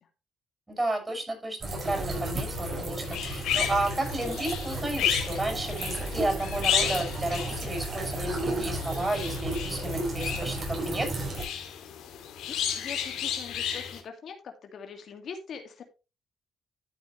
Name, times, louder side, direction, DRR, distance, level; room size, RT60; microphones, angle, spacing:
voice 1, 0.7-11.1, right 2 dB, 15° right, 2 dB, 6.9 m, -32 dB
sound 1, 1.6-11.4, right 1 dB, 40° right, 6.3 m, -33 dB
sound 2, 3.0-14.0, left 9 dB, 85° left, 2.4 m, -33 dB
voice 2, 12.5-15.8, left 6 dB, 60° left, 5 dB, 2.0 m, -42 dB
13.0 x 7.0 x 3.1 m, 0.29 s
cardioid pair, 95°, 0 cm